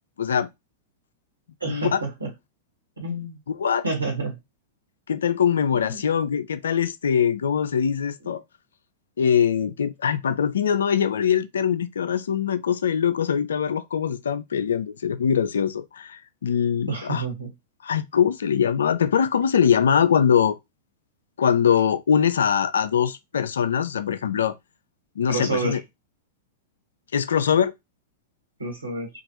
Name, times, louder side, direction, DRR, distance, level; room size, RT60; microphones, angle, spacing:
voice 1, 0.2-0.5 1.6-2.0 3.5-3.8 5.1-8.4 9.2-17.2 17.8-20.6 21.4-24.5 25.2-25.8 27.1-27.7, left 8 dB, 70° left, 0.3 m, -22 dB
voice 2, 1.6-2.3 3.0-3.4 3.8-4.3 5.8-6.0 16.9-17.5 25.3-25.8 28.6-29.1, right 3 dB, 90° right, 1.4 m, -28 dB
3.0 x 2.4 x 2.8 m
figure-of-eight pair, 95°, 0 cm